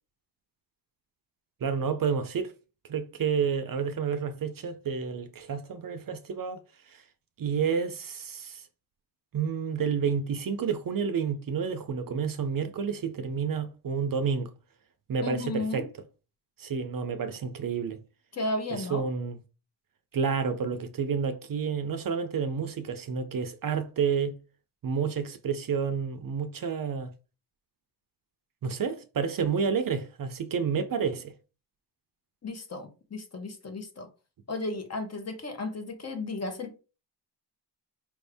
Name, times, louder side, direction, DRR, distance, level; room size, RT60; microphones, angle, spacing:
voice 1, 1.6-2.5 2.9-6.6 6.9-7.0 7.4-8.7 9.3-14.5 15.1-15.9 16.6-18.0 18.7-19.4 20.1-24.3 24.8-27.1 28.6-31.3, right 6 dB, 50° right, 0.5 m, -30 dB
voice 2, 15.2-15.9 18.3-19.1 32.4-34.1 34.5-36.8, left 2 dB, 35° left, 0.8 m, -34 dB
4.7 x 2.6 x 3.4 m
wide cardioid pair, 130°, 44 cm